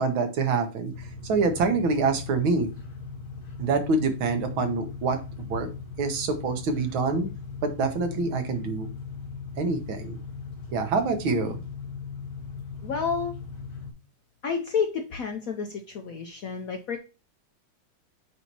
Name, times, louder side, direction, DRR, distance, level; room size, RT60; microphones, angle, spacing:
voice 1, 0.0-2.7 3.6-5.7 6.0-7.3 7.6-8.9 9.6-10.2 10.7-11.6, right 4 dB, 80° right, 6 dB, 1.9 m, -26 dB
sound 1, 0.9-13.9, left 5 dB, 90° left, 2.9 m, -39 dB
voice 2, 11.3-11.6 12.8-13.4 14.4-17.0, left 6 dB, 65° left, 4 dB, 0.8 m, -30 dB
8.2 x 2.8 x 4.6 m, 0.30 s
omnidirectional pair, 2.2 m